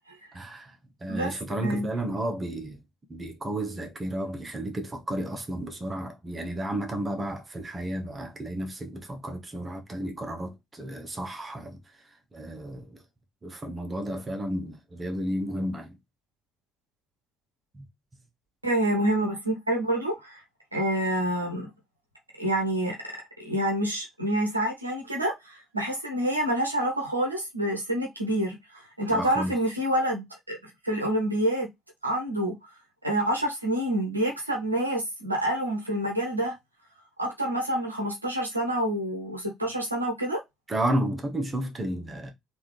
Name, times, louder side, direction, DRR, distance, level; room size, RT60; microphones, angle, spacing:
voice 1, 0.3-2.8 3.1-11.8 12.3-13.0 13.4-16.0 17.7-17.8 29.1-29.5 40.7-42.3, right 1 dB, 25° right, 1.0 m, -32 dB
voice 2, 18.6-20.4 20.7-21.7 22.4-23.0 23.4-30.6 30.8-31.7 32.0-32.5 33.0-36.6 37.2-40.4, right 1 dB, 85° right, 0.7 m, -27 dB
3.6 x 2.7 x 3.1 m
figure-of-eight pair, 50°, 0 cm